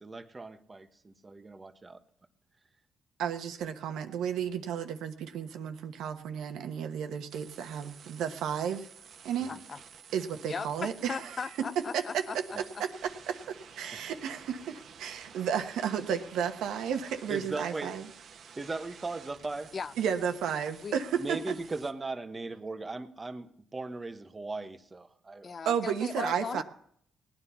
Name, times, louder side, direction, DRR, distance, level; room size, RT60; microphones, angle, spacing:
voice 1, 0.0-2.0 9.4-9.6 12.5-12.6 17.3-17.9 18.6-19.7 21.2-25.5, right 3 dB, 25° right, 10 dB, 1.1 m, -38 dB
voice 2, 3.2-8.9 9.2-9.5 10.1-11.3 11.9-12.2 12.8-12.9 13.3-18.1 20.0-21.6 25.6-26.6, right 8 dB, 80° right, 7 dB, 1.2 m, -33 dB
sound 1, 7.3-21.9, right 7 dB, 60° right, 1.1 m, -52 dB
voice 3, 9.5-9.8 10.4-12.8 19.7-19.9 20.8-20.9 25.4-26.6, left 5 dB, 40° left, 16 dB, 0.5 m, -38 dB
18.0 x 9.8 x 5.6 m, 0.67 s
cardioid pair, 90°, 0 cm